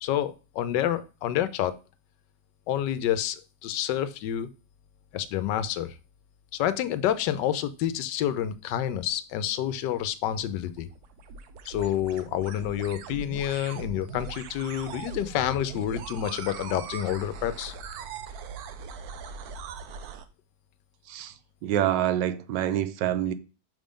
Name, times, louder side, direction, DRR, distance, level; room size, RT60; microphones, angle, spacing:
voice 1, 0.0-1.8 2.7-4.5 5.1-6.0 6.5-10.9 11.6-17.7, left 11 dB, 85° left, 1.2 m, -28 dB
sound 1, 10.4-20.3, right 6 dB, 70° right, 1.0 m, -40 dB
voice 2, 21.1-23.3, right 11 dB, 90° right, 1.3 m, -27 dB
5.8 x 3.6 x 5.1 m
omnidirectional pair, 1.9 m